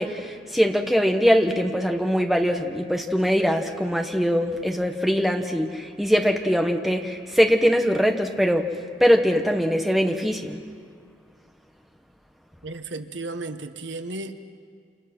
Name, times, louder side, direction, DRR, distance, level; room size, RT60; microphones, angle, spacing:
voice 1, 0.0-8.7 9.0-10.6, equal, ahead, 3 dB, 1.3 m, -22 dB
voice 2, 12.6-14.5, right 2 dB, 85° right, 8 dB, 1.3 m, -34 dB
28.5 x 28.0 x 6.2 m, 2.2 s
head